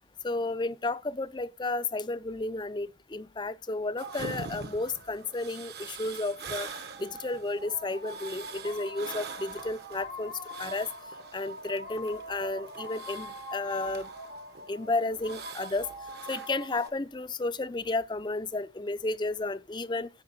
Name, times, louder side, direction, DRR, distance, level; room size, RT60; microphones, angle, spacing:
voice 1, 0.2-6.7 7.0-10.3 10.6-10.9 11.3-14.1 14.7-15.9 16.3-20.1, left 2 dB, 25° left, 0.5 m, -32 dB
sound 1, 4.0-16.9, right 2 dB, 55° right, 1.2 m, -41 dB
10.5 x 4.7 x 6.9 m
head